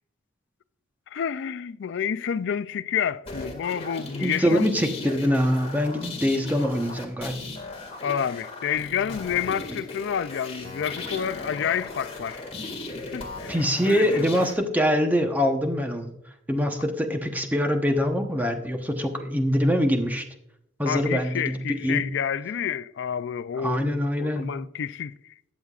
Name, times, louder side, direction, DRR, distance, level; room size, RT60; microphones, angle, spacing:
voice 1, 1.1-4.7 8.0-12.4 12.9-13.6 13.8-14.3 20.9-25.1, left 8 dB, 65° left, 0.4 m, -29 dB
sound 1, 3.2-14.5, left 3 dB, 35° left, 2.0 m, -37 dB
voice 2, 4.2-7.4 13.5-16.1 16.5-20.2 20.8-22.1 23.5-24.5, equal, 10° right, 1.0 m, -24 dB
20.5 x 7.2 x 2.4 m
head